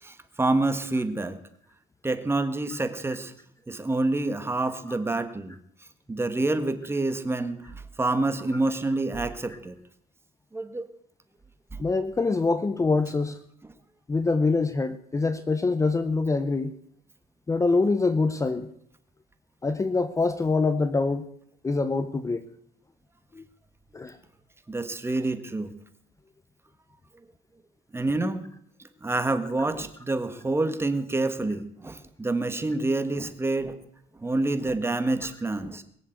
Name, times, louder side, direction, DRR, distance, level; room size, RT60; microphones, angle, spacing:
voice 1, 0.0-1.4 2.0-3.3 3.7-5.6 6.1-9.7 10.5-10.9 11.7-11.8 24.7-25.7 27.9-28.4 29.0-33.7 34.2-35.8, right 2 dB, 15° right, 9 dB, 1.6 m, -27 dB
voice 2, 11.8-13.4 14.1-16.7 17.5-18.7 19.6-21.3 21.6-22.4 23.4-23.5 23.9-24.2, left 3 dB, 20° left, 11 dB, 0.8 m, -24 dB
21.5 x 7.3 x 8.0 m, 0.70 s
cardioid pair, 110°, 17 cm